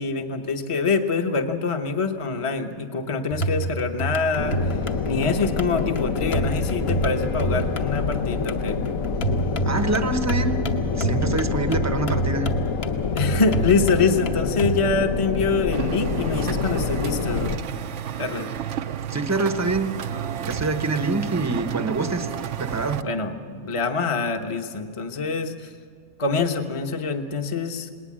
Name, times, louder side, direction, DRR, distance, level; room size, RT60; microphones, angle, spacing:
voice 1, 0.0-4.8 5.0-8.8 13.1-17.6 18.2-18.5 23.0-25.7 26.2-28.0, left 4 dB, 25° left, 5 dB, 0.9 m, -25 dB
sound 1, 3.3-14.8, right 2 dB, 50° left, 1.3 m, -29 dB
sound 2, 4.4-17.6, left 5 dB, 75° left, 1.3 m, -27 dB
voice 2, 9.6-10.6 10.9-12.5 19.1-19.9 20.4-23.1, right 3 dB, 15° right, 8 dB, 0.7 m, -25 dB
sound 3, 15.7-23.0, right 9 dB, 65° right, 0.9 m, -31 dB
19.5 x 19.5 x 7.5 m, 2.2 s
omnidirectional pair, 1.5 m